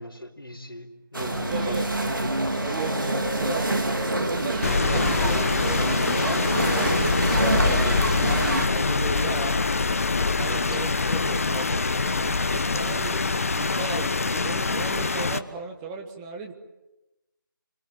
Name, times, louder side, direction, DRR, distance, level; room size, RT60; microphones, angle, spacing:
voice 1, 0.0-2.6 9.4-9.7, left 1 dB, 85° left, 4.2 m, -39 dB
sound 1, 1.1-8.7, right 1 dB, 65° right, 4.2 m, -26 dB
voice 2, 1.5-1.9 2.6-6.4 6.7-8.4 8.6-9.6 10.2-16.5, right 4 dB, 10° right, 1.2 m, -36 dB
Rain, 4.6-15.4, left 4 dB, 40° left, 1.2 m, -24 dB
28.0 x 25.5 x 7.6 m
figure-of-eight pair, 160°, 12 cm